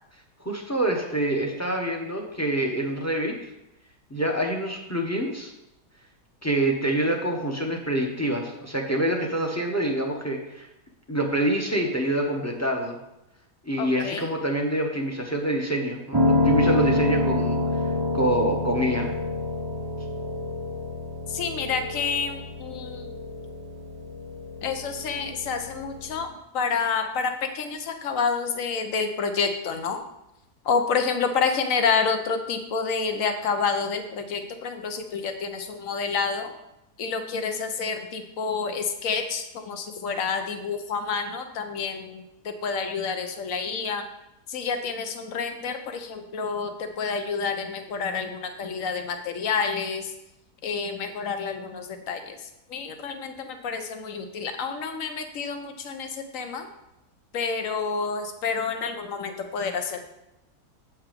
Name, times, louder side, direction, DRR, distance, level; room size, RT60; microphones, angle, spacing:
voice 1, 0.4-3.3 4.1-5.5 6.4-10.7 11.1-13.0 13.6-17.6 18.1-19.1, right 1 dB, 10° left, 1 dB, 0.9 m, -26 dB
voice 2, 13.8-14.3 21.3-23.2 24.6-30.0 30.6-36.5 37.0-44.1 44.5-50.1 50.6-56.7 57.3-60.0, left 5 dB, 60° left, 6 dB, 1.2 m, -29 dB
Piano, 16.1-26.2, left 2 dB, 25° right, 0.5 m, -27 dB
8.2 x 5.9 x 5.2 m, 0.90 s
omnidirectional pair, 1.7 m